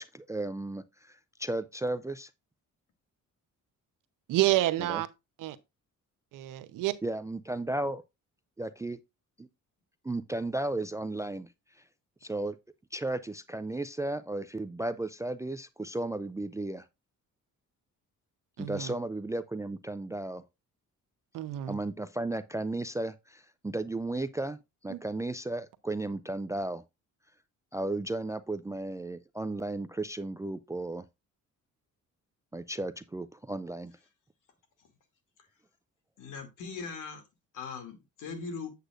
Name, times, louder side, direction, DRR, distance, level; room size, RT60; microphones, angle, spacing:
voice 1, 0.0-2.3 4.9-5.0 7.0-8.0 8.6-9.0 9.4-9.5 10.0-11.5 12.2-12.6 12.9-16.8 18.6-20.4 21.7-24.6 24.8-26.8 27.7-31.0 32.5-33.9, right 2 dB, 10° right, 0.3 m, -34 dB
voice 2, 4.3-5.1 5.4-5.6 6.3-6.9 18.6-18.9 21.3-21.8 24.9-25.0, right 15 dB, 90° right, 0.9 m, -28 dB
voice 3, 36.2-37.2 37.5-38.7, left 5 dB, 70° left, 2.6 m, -40 dB
8.1 x 7.9 x 2.5 m
cardioid pair, 125°, 31 cm